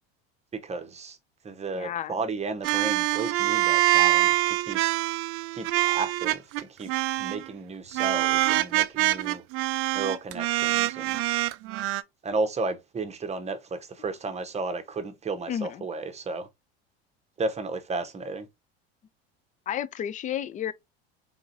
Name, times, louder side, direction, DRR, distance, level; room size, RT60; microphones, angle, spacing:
voice 1, 0.5-1.2 1.4-4.8 5.5-6.9 7.2-9.4 9.9-11.2 12.2-16.5 17.4-18.5, right 3 dB, 20° right, 0.8 m, -33 dB
voice 2, 1.7-2.2 6.8-6.9 15.5-15.9 19.7-20.7, left 10 dB, 25° left, 0.3 m, -32 dB
sound 1, 2.6-6.6 6.9-7.4 7.9-12.0, right 17 dB, 45° right, 0.4 m, -25 dB
3.8 x 3.6 x 2.6 m
hypercardioid pair, 85°, 31 cm